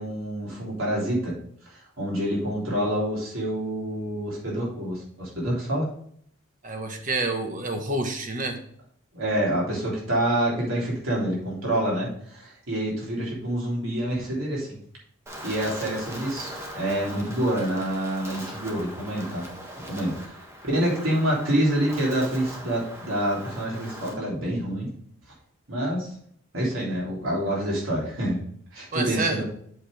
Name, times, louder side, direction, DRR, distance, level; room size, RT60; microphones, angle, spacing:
voice 1, 0.0-1.4 1.6-5.9 9.1-14.8 15.4-19.5 19.9-20.4 20.6-24.9 25.7-26.1 26.5-28.4 28.7-29.4, right 1 dB, 75° right, -5 dB, 3.5 m, -27 dB
voice 2, 6.6-8.6 28.9-29.4, right 2 dB, 40° right, 5 dB, 1.2 m, -28 dB
Wind, 15.3-24.1, equal, 15° right, 1.3 m, -40 dB
7.9 x 6.6 x 3.4 m, 0.62 s
head